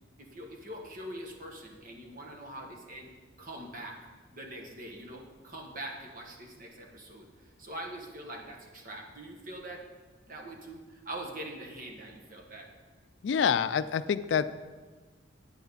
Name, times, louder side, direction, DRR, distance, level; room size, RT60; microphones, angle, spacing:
voice 1, 0.2-3.1 3.4-4.0 4.3-9.8 10.3-12.7, right 1 dB, 45° right, 1 dB, 1.4 m, -43 dB
voice 2, 13.2-14.5, left 7 dB, 65° left, 13 dB, 0.3 m, -27 dB
9.2 x 9.0 x 4.0 m, 1.3 s
head